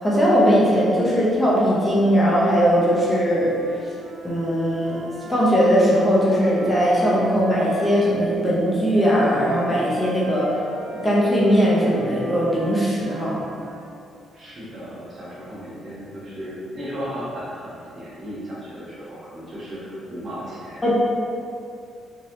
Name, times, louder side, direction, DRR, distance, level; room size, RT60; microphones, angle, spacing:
voice 1, 0.0-3.6 4.2-5.0 5.2-10.5 11.0-13.4 20.8-20.9, equal, 20° left, -7 dB, 0.7 m, -19 dB
Wind instrument woodwind instrument, 3.2-8.2 8.9-13.9, equal, 75° right, 0.5 m, -37 dB
voice 2, 14.3-20.9, equal, 45° right, -8 dB, 1.1 m, -35 dB
3.1 x 2.6 x 2.7 m, 2.5 s
cardioid pair, 90°, 0 cm